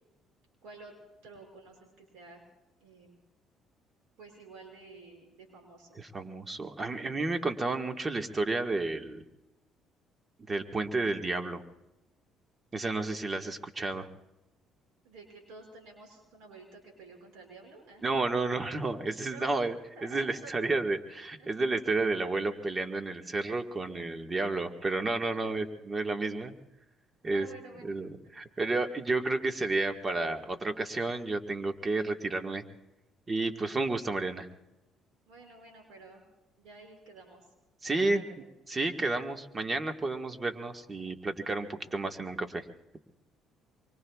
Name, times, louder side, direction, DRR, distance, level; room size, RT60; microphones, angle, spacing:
voice 1, 0.6-0.9 1.2-2.4 2.8-3.2 4.2-6.0 15.0-18.0 18.4-18.5 19.3-19.5 19.9-20.7 21.4-21.5 22.0-22.1 25.2-25.5 27.3-27.9 33.6-33.9 35.3-36.2 36.6-37.5 37.9-38.4, right 3 dB, 80° right, 2 dB, 5.8 m, -51 dB
voice 2, 6.0-9.2 10.5-11.6 12.7-14.1 18.0-19.7 20.0-26.5 27.2-27.5 27.8-32.6 33.3-34.5 37.8-38.2 38.7-42.6, right 3 dB, 30° right, 5 dB, 1.6 m, -31 dB
25.5 x 24.0 x 2.4 m, 0.95 s
supercardioid pair, 70°, 0 cm